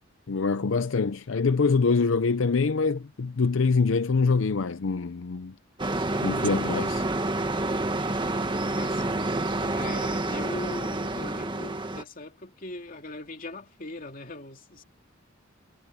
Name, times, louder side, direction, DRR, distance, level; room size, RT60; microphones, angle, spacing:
voice 1, 0.3-5.5 6.2-7.0, left 4 dB, 80° left, 0.6 m, -24 dB
sound 1, 5.8-12.0, right 2 dB, 25° right, 1.6 m, -28 dB
voice 2, 8.7-9.3 9.6-14.8, left 1 dB, 45° left, 2.5 m, -40 dB
head